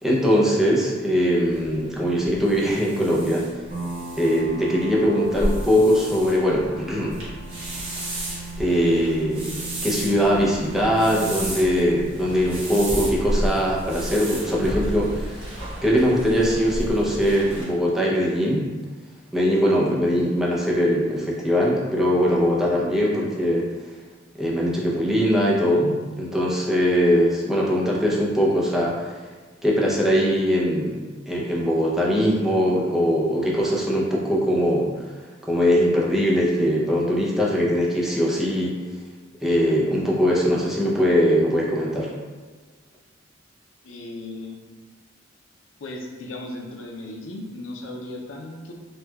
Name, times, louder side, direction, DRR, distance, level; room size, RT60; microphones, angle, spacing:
voice 1, 0.0-3.4 4.2-7.2 8.6-9.5 9.8-15.4 15.8-18.7 19.3-23.7 24.4-29.2 29.6-31.0 31.3-34.9 35.5-38.8 39.4-42.1, equal, ahead, -5 dB, 0.5 m, -21 dB
sound 1, 1.5-17.6, right 1 dB, 85° right, 1.2 m, -32 dB
sound 2, 3.7-17.0, right 2 dB, 35° right, 0.9 m, -39 dB
voice 2, 43.8-44.6 45.8-48.7, left 2 dB, 90° left, 0 dB, 0.5 m, -36 dB
4.2 x 2.3 x 2.2 m, 1.4 s
head